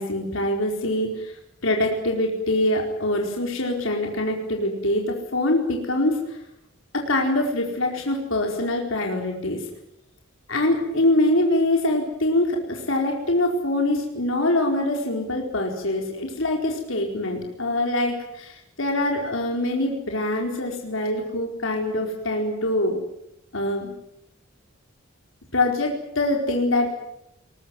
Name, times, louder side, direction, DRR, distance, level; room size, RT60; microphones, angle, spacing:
voice 1, 0.0-6.4 6.9-9.6 10.5-23.0 23.5-23.9 25.5-26.9, left 1 dB, 70° left, 1 dB, 4.5 m, -24 dB
22.5 x 20.5 x 9.6 m, 0.80 s
head